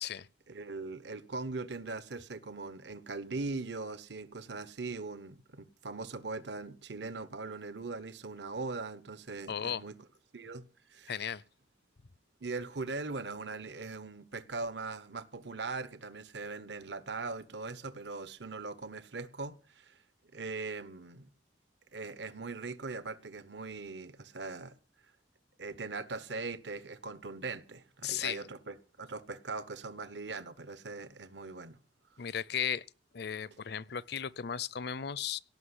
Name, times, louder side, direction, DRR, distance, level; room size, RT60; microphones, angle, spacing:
voice 1, 0.5-9.9 10.3-10.6 10.9-11.1 12.4-20.0 20.3-21.3 21.9-24.7 25.6-31.8, right 3 dB, 65° right, 1.1 m, -40 dB
voice 2, 9.5-9.8 11.1-11.4 28.0-28.4 32.2-32.8 33.1-35.4, left 8 dB, 60° left, 0.6 m, -35 dB
17.5 x 6.0 x 9.8 m
head